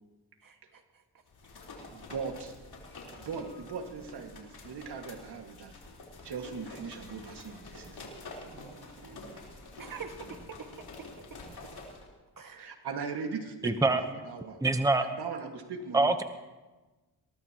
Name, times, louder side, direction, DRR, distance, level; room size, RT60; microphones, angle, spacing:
voice 1, 0.4-1.0 8.4-9.4 9.8-11.1 12.4-12.7 13.6-13.8, right 5 dB, 55° right, 5 dB, 1.9 m, -47 dB
sound 1, 1.3-12.1, left 2 dB, 65° left, 4.0 m, -48 dB
voice 2, 1.9-2.6 3.1-5.7 6.2-8.1 12.6-14.6 15.0-16.1, right 5 dB, 75° right, 4 dB, 2.0 m, -39 dB
voice 3, 13.6-14.0 14.6-15.1 15.9-16.2, right 2 dB, 10° right, 8 dB, 0.9 m, -24 dB
22.5 x 18.5 x 3.0 m, 1.2 s
cardioid pair, 70°, 40 cm